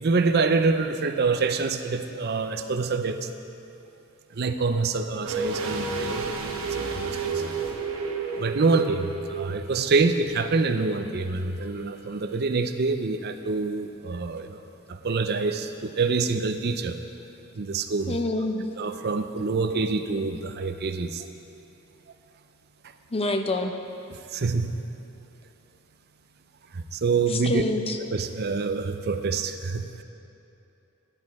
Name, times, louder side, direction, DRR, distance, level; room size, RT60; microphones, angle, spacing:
voice 1, 0.0-3.3 4.3-7.4 8.3-14.6 14.9-17.0 17.5-18.1 18.8-21.3 24.1-24.8 26.7-27.6 28.1-30.0, right 4 dB, 50° right, 8 dB, 0.5 m, -26 dB
sound 1, 5.3-10.1 10.4-10.5, right 4 dB, 75° right, 1.1 m, -31 dB
voice 2, 18.1-18.7 23.1-23.7 27.3-28.0, left 2 dB, 25° left, 6 dB, 0.6 m, -27 dB
12.5 x 10.5 x 4.8 m, 2.8 s
head